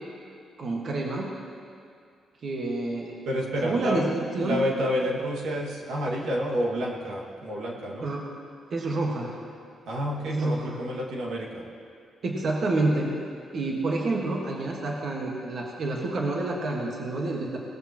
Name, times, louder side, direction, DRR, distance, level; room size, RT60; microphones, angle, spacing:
voice 1, 0.6-1.3 2.4-3.3 3.6-4.6 8.0-8.3 8.7-9.4 10.3-10.7 12.2-13.1 13.5-17.6, right 2 dB, 50° right, -1 dB, 1.6 m, -28 dB
voice 2, 3.3-4.1 4.4-8.1 9.9-11.6, equal, 85° right, -2 dB, 2.0 m, -29 dB
19.5 x 13.5 x 3.0 m, 2.3 s
cardioid pair, 130°, 0 cm